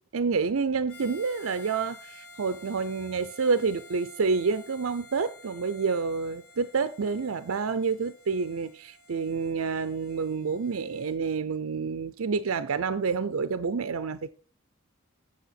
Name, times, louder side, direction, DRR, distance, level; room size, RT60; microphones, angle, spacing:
voice 1, 0.1-14.3, right 5 dB, 80° right, 0.6 m, -28 dB
Harmonica, 0.9-11.2, left 2 dB, 75° left, 3.3 m, -51 dB
8.5 x 7.8 x 5.8 m
head